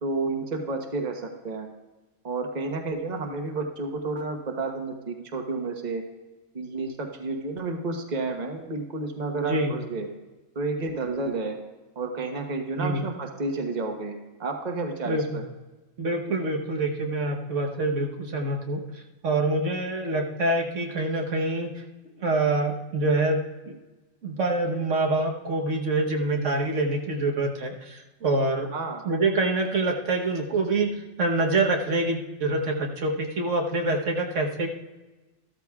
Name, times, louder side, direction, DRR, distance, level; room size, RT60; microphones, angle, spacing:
voice 1, 0.0-1.7 2.2-6.0 6.5-10.1 10.5-11.6 11.9-14.1 14.4-15.4 28.7-29.0, right 3 dB, 35° right, 3 dB, 1.2 m, -31 dB
voice 2, 16.0-18.8 19.2-21.7 22.2-23.4 23.7-23.8 24.2-28.7 29.0-30.9 31.2-34.7, right 2 dB, 75° right, 1 dB, 1.5 m, -25 dB
14.5 x 13.0 x 2.4 m, 1.2 s
omnidirectional pair, 1.3 m